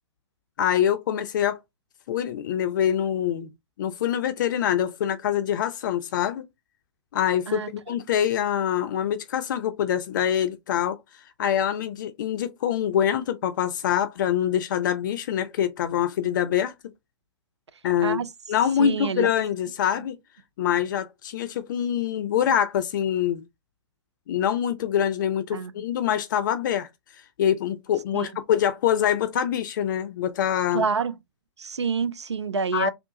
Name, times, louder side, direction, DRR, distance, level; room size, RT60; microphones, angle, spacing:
voice 1, 0.6-1.6 2.1-3.5 3.8-6.5 7.1-11.0 11.4-16.7 17.8-18.2 18.5-20.2 20.6-23.4 24.3-26.9 27.4-30.8 32.7-32.9, left 10 dB, 45° left, 0.4 m, -25 dB
voice 2, 7.5-7.9 18.0-18.3 18.8-19.3 25.5-25.7 28.1-28.3 30.7-31.1 31.6-32.9, right 5 dB, 80° right, 0.4 m, -27 dB
3.4 x 2.4 x 2.7 m
figure-of-eight pair, 115°, 14 cm